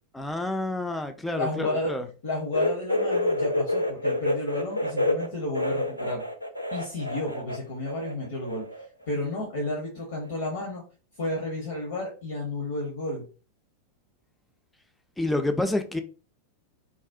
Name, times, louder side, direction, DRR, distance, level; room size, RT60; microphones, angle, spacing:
voice 1, 0.1-2.0 15.2-16.0, left 2 dB, 5° left, 0.3 m, -28 dB
voice 2, 1.4-2.0 2.2-6.2 6.7-8.6 9.1-10.8 11.2-13.3, left 2 dB, 55° left, 0.7 m, -31 dB
sound 1, 2.5-7.6 7.8-8.8 9.1-9.2 10.3-10.4, left 1 dB, 90° right, 0.3 m, -28 dB
2.4 x 2.0 x 2.5 m
figure-of-eight pair, 90°, 0 cm